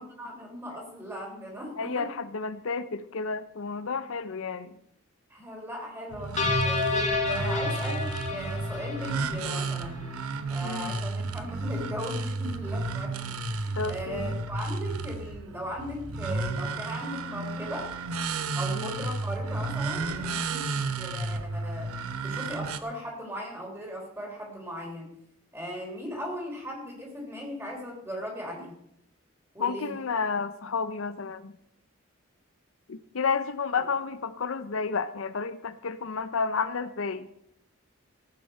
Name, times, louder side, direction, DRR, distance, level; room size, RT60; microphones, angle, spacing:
voice 1, 0.0-2.1 5.3-6.3 6.6-10.1 10.5-17.9 18.5-21.9 22.2-25.1 25.5-28.7 29.5-30.0, equal, 10° right, -1 dB, 3.4 m, -38 dB
voice 2, 1.8-4.7 10.6-10.9 13.8-14.4 18.7-18.9 29.6-31.5 32.9-37.3, left 5 dB, 65° left, 12 dB, 0.6 m, -31 dB
sound 1, 6.1-22.8, right 3 dB, 85° right, 0.8 m, -32 dB
sound 2, 6.4-9.7, left 3 dB, 30° left, 2.0 m, -29 dB
15.0 x 8.9 x 5.5 m, 0.77 s
head